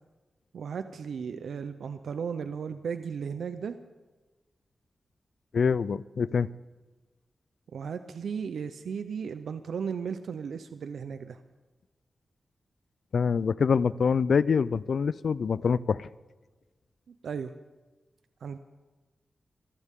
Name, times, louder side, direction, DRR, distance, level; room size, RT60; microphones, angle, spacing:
voice 1, 0.5-3.8 7.7-11.4 17.1-17.5 18.4-18.6, right 6 dB, 90° right, 10 dB, 0.6 m, -35 dB
voice 2, 5.5-6.5 13.1-16.1, left 6 dB, 70° left, 19 dB, 0.4 m, -25 dB
25.5 x 15.0 x 3.7 m, 1.2 s
cardioid pair, 75°, 0 cm